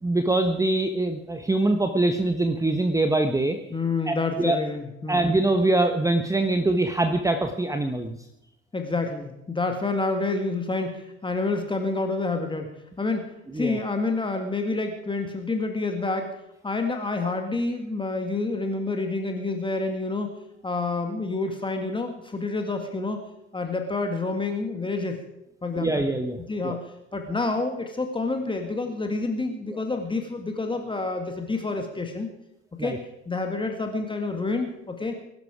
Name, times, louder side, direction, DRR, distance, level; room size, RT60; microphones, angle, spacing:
voice 1, 0.0-3.6 4.1-4.6 5.1-8.2 13.5-13.8 25.7-26.4 26.6-26.8 29.7-29.8 32.8-33.0, right 2 dB, 10° right, 7 dB, 1.2 m, -23 dB
voice 2, 3.7-5.4 8.7-16.3 16.6-20.3 20.6-23.2 23.5-25.2 25.6-26.1 26.5-26.8 27.1-32.3 32.8-35.1, left 3 dB, 15° left, 4 dB, 2.0 m, -28 dB
22.0 x 12.5 x 4.9 m, 0.86 s
figure-of-eight pair, 65°, 37 cm